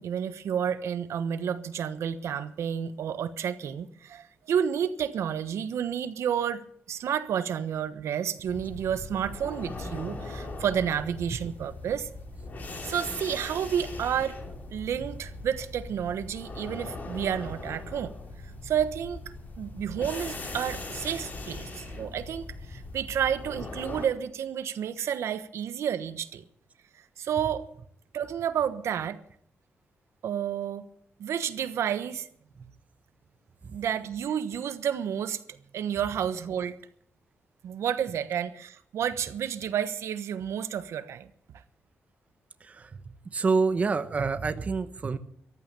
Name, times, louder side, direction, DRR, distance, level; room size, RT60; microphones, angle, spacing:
voice 1, 0.0-12.1 12.8-14.4 14.7-18.1 18.4-19.2 19.6-26.4 26.9-27.7 28.1-29.2 30.2-30.9 31.2-32.3 33.7-36.8 37.6-41.3, right 8 dB, 90° right, 12 dB, 1.1 m, -30 dB
sound 1, 8.4-24.1, left 2 dB, 40° left, 3.3 m, -40 dB
voice 2, 42.6-43.0 43.3-45.2, right 4 dB, 30° right, 11 dB, 0.9 m, -27 dB
14.5 x 12.5 x 6.8 m, 0.65 s
wide cardioid pair, 170°, 5 cm